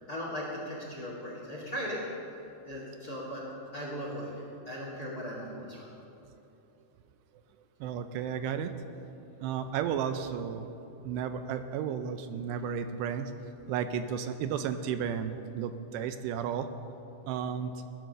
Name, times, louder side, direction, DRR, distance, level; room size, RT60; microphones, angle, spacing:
voice 1, 0.1-2.0 2.6-3.4 3.7-5.9, equal, 30° left, -2 dB, 1.9 m, -38 dB
voice 2, 7.8-8.7 9.4-10.7 11.0-13.3 13.7-16.7 17.3-17.7, right 8 dB, 80° right, 9 dB, 2.8 m, -33 dB
18.0 x 11.0 x 6.7 m, 2.7 s
omnidirectional pair, 5.0 m